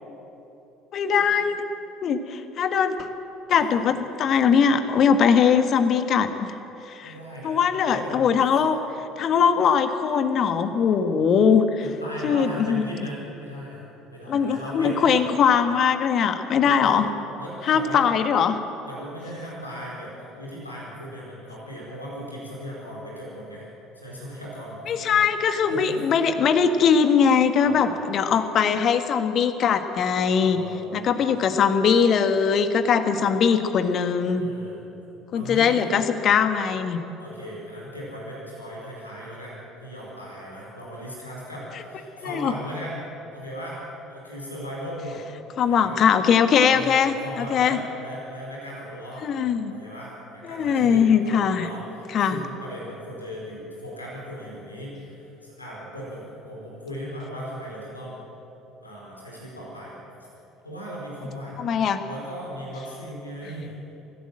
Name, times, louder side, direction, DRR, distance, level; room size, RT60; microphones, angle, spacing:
voice 1, 0.9-1.6 2.0-2.9 3.5-6.5 6.9-7.1 7.4-8.8 9.2-11.9 12.2-12.8 14.3-17.1 17.7-18.6 24.9-30.6 30.9-34.5 35.3-37.0 42.2-42.5 45.6-47.8 49.2-49.7 50.5-51.7 52.1-52.4 61.6-62.0, left 7 dB, 45° left, 9 dB, 1.5 m, -21 dB
voice 2, 7.0-8.4 8.7-8.8 11.8-15.2 16.7-17.0 17.4-18.1 18.9-23.7 23.9-25.2 25.7-26.1 27.5-28.0 30.4-31.2 34.3-35.0 35.3-35.8 37.2-43.0 43.3-43.8 44.1-45.2 45.6-46.0 46.7-49.3 49.7-58.2 58.8-60.0 60.6-61.7 62.0-63.7, equal, 85° left, -4 dB, 4.9 m, -37 dB
24.0 x 16.5 x 7.7 m, 2.9 s
figure-of-eight pair, 60°, 0 cm